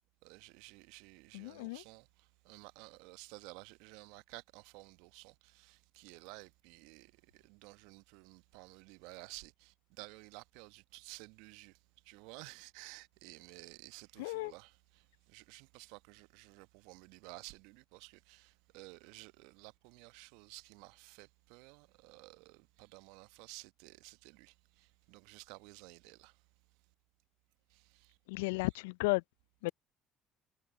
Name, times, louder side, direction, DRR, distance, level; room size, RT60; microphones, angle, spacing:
voice 1, 0.2-11.8 12.0-26.4 27.7-28.2, right 27 dB, 70° right, 1.1 m, -54 dB
voice 2, 1.3-1.8 14.2-14.5 28.3-29.2 29.6-29.7, left 24 dB, 75° left, 0.4 m, -34 dB
hypercardioid pair, 55°, 0 cm